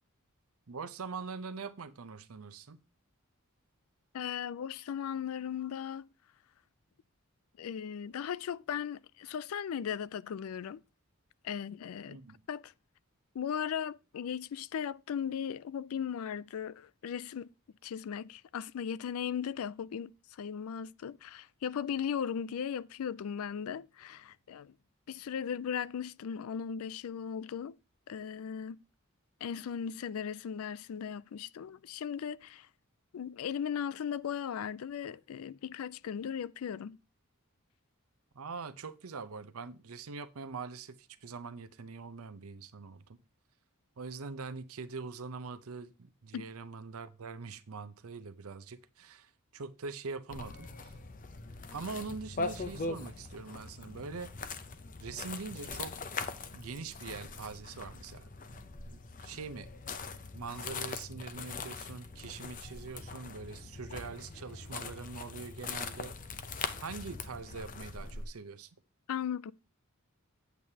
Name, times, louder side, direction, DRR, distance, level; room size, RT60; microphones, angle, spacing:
voice 1, 0.7-2.8 12.1-12.4 38.3-43.2 44.0-50.9 51.7-54.3 55.0-55.9 56.5-58.3 59.2-59.7 60.3-66.1 66.8-68.7, right 4 dB, 85° right, 0.7 m, -43 dB
voice 2, 4.1-6.1 7.6-10.8 11.4-12.2 12.5-12.7 13.3-17.5 17.8-24.7 25.1-27.8 28.1-28.8 29.4-32.7 33.1-37.0 46.3-46.4 69.1-69.5, left 8 dB, 80° left, 0.4 m, -37 dB
sound 1, 50.3-68.3, left 4 dB, 40° left, 0.7 m, -42 dB
9.0 x 8.2 x 2.8 m
head